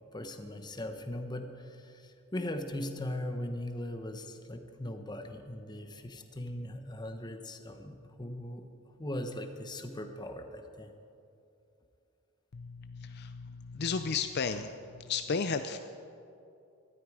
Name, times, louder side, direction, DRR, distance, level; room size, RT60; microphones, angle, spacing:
voice 1, 0.1-8.7 9.0-10.9, left 1 dB, 20° left, 6 dB, 1.0 m, -39 dB
voice 2, 12.5-15.8, left 5 dB, 50° left, 9 dB, 0.5 m, -34 dB
19.0 x 13.0 x 4.9 m, 2.6 s
head